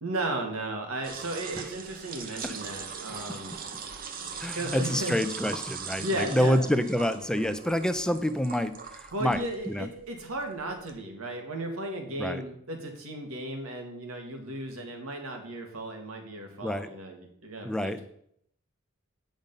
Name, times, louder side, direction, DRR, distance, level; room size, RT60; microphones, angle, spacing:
voice 1, 0.0-3.6 4.5-5.2 6.0-6.6 9.1-18.0, right 1 dB, 70° right, 3 dB, 1.8 m, -35 dB
sound 1, 1.0-11.0, right 6 dB, 40° right, 0.8 m, -41 dB
voice 2, 4.4-8.8 9.2-9.4 9.7-9.9 12.2-12.4 16.6-16.9 17.6-18.0, equal, 5° left, 10 dB, 0.4 m, -27 dB
9.4 x 5.2 x 5.3 m, 0.70 s
head